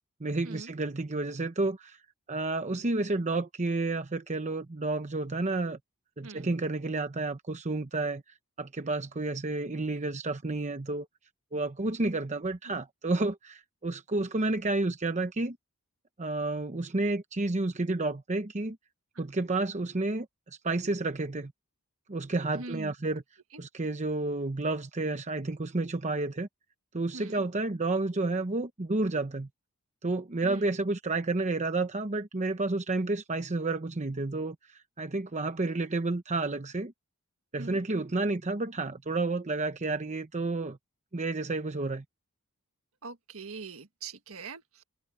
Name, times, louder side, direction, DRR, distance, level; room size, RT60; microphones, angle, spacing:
voice 1, 0.2-2.0 2.3-5.8 6.2-8.2 8.6-11.1 11.5-15.6 16.2-18.8 19.2-20.3 20.6-21.5 22.1-23.2 23.6-26.5 26.9-29.5 30.0-36.9 37.5-40.8 41.1-42.0, right 2 dB, 35° right, 0.9 m, -30 dB
voice 2, 22.5-22.9 23.5-23.6 27.1-27.4 30.4-30.7 37.6-37.8 43.0-44.8, right 3 dB, 70° right, 1.8 m, -42 dB
head